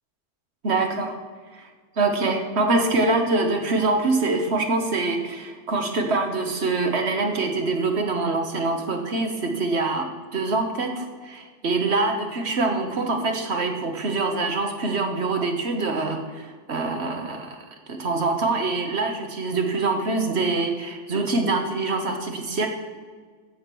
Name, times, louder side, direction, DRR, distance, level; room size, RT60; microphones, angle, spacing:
voice 1, 0.6-1.2 1.5-1.7 2.0-22.7, right 3 dB, 60° right, 4 dB, 1.6 m, -25 dB
14.5 x 5.1 x 6.1 m, 1.6 s
omnidirectional pair, 1.3 m